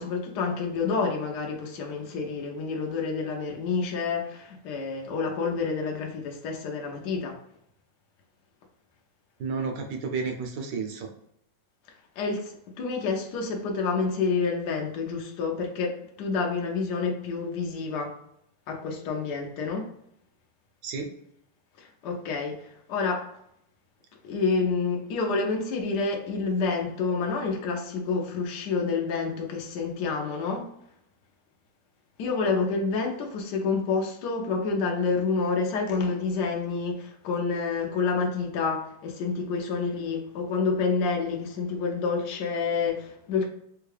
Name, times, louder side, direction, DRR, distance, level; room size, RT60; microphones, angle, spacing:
voice 1, 0.0-7.4 12.2-18.1 18.7-19.9 21.8-23.3 24.2-30.7 32.2-43.5, left 4 dB, 70° left, 1.3 m, -28 dB
voice 2, 9.4-11.1 20.8-21.1, right 5 dB, 85° right, 1.3 m, -31 dB
3.6 x 2.3 x 3.2 m
omnidirectional pair, 1.9 m